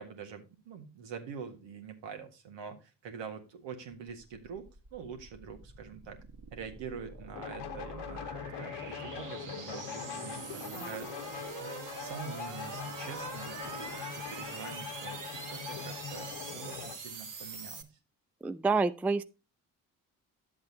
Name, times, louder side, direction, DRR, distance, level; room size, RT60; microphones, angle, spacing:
voice 1, 0.0-6.2 6.5-8.2 8.6-11.4 12.0-18.0, right 6 dB, 70° right, 1.7 m, -45 dB
sound 1, 4.2-17.8, right 4 dB, 45° right, 1.7 m, -44 dB
sound 2, 7.3-17.0, left 8 dB, 65° left, 1.1 m, -42 dB
voice 2, 18.4-19.2, right 4 dB, 5° right, 0.4 m, -27 dB
11.0 x 7.6 x 2.8 m
hypercardioid pair, 45°, 45 cm